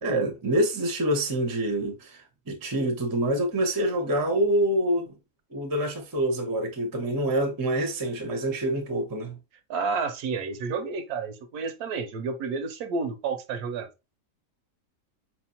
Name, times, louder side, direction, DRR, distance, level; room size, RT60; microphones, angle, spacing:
voice 1, 0.0-5.2 5.5-9.4, right 1 dB, 25° right, 0.5 m, -26 dB
voice 2, 9.7-13.9, right 4 dB, 75° right, 1.1 m, -30 dB
4.6 x 2.9 x 2.7 m
omnidirectional pair, 1.7 m